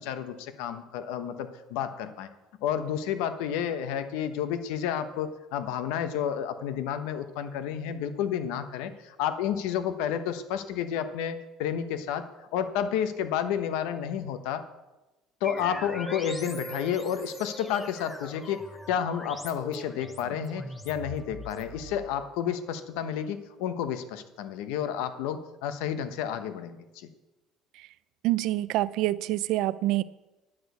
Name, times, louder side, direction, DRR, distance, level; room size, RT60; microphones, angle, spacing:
voice 1, 0.0-2.3 2.6-12.3 12.5-14.6 15.4-18.6 18.9-27.1, left 9 dB, 85° left, 10 dB, 1.0 m, -31 dB
sound 1, 15.4-22.6, equal, 10° left, 0.9 m, -41 dB
voice 2, 28.2-30.0, right 16 dB, 60° right, 17 dB, 0.4 m, -26 dB
10.5 x 6.2 x 8.3 m, 1.0 s
cardioid pair, 155°, 0 cm